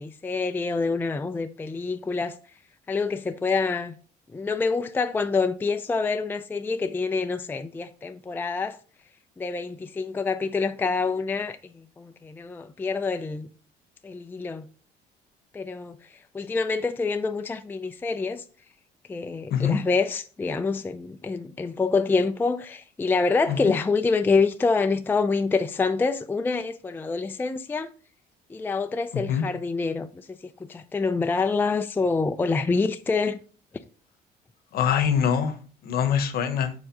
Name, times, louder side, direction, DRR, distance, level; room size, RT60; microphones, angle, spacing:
voice 1, 0.0-2.4 2.9-3.9 4.3-8.8 9.4-13.5 14.0-14.7 15.5-16.0 16.3-18.4 19.1-27.9 28.5-33.4, left 4 dB, 10° left, 0.3 m, -26 dB
voice 2, 34.7-35.5 35.8-36.7, left 8 dB, 65° left, 0.9 m, -23 dB
6.2 x 4.6 x 3.7 m
cardioid pair, 110°, 17 cm